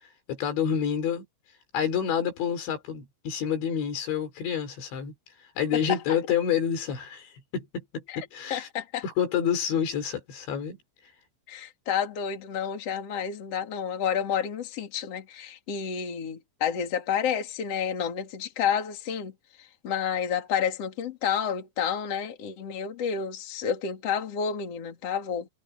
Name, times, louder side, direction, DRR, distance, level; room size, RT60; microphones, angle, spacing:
voice 1, 0.3-1.2 1.7-5.1 5.6-8.7 9.0-10.8, left 8 dB, 80° left, 6.4 m, -28 dB
voice 2, 8.5-9.0 11.5-19.3 19.6-25.5, left 8 dB, 40° left, 3.4 m, -30 dB
omnidirectional pair, 5.2 m